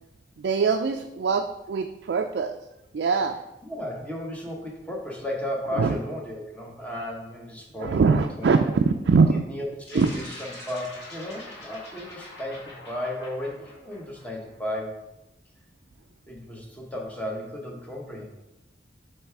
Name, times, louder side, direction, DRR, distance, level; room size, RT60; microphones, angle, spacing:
voice 1, 0.4-2.6 2.9-3.4 5.8-6.0 7.8-9.4 9.9-10.1, right 4 dB, 70° right, 5 dB, 0.3 m, -22 dB
voice 2, 3.6-8.8 9.3-15.0 16.3-18.2, left 1 dB, 10° left, -1 dB, 1.1 m, -34 dB
sound 1, 9.9-14.6, left 1 dB, 70° left, 1.8 m, -44 dB
7.3 x 3.3 x 4.6 m, 0.95 s
head